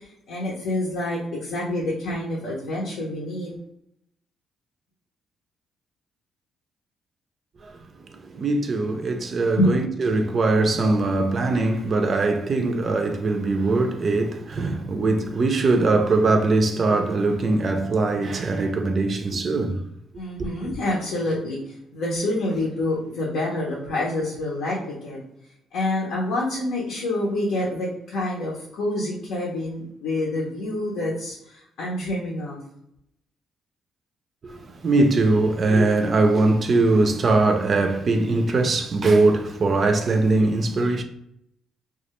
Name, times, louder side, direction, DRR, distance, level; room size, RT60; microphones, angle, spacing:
voice 1, 0.0-3.5 9.6-9.8 20.2-25.2 25.7-32.6, left 1 dB, 85° left, 0.7 m, -27 dB
voice 2, 8.2-19.8 20.4-20.5 34.4-41.0, right 3 dB, 45° right, 0.3 m, -21 dB
2.3 x 2.1 x 2.9 m
cardioid pair, 90°, 0 cm